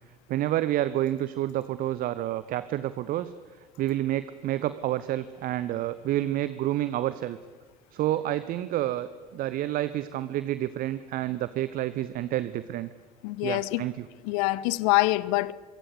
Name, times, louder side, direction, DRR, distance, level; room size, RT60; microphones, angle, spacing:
voice 1, 0.3-3.3 3.8-7.4 7.9-12.9 13.4-14.1, right 13 dB, 45° right, 1.0 m, -29 dB
voice 2, 13.2-13.8 14.2-15.5, left 20 dB, 60° left, 0.8 m, -25 dB
25.5 x 24.0 x 8.3 m
figure-of-eight pair, 60°, 20 cm